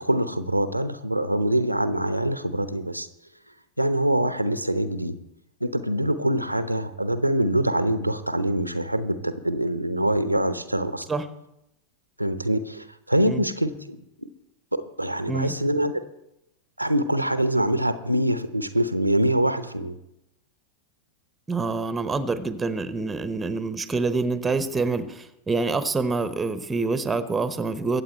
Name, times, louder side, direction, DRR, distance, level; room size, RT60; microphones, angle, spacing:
voice 1, 0.0-3.1 3.8-5.1 5.6-11.1 12.2-14.3 14.7-15.9 16.8-20.0, right 1 dB, 90° right, 11 dB, 0.8 m, -24 dB
voice 2, 21.5-28.0, right 3 dB, 10° right, 12 dB, 0.9 m, -26 dB
23.0 x 8.2 x 4.4 m, 0.86 s
figure-of-eight pair, 90°, 0 cm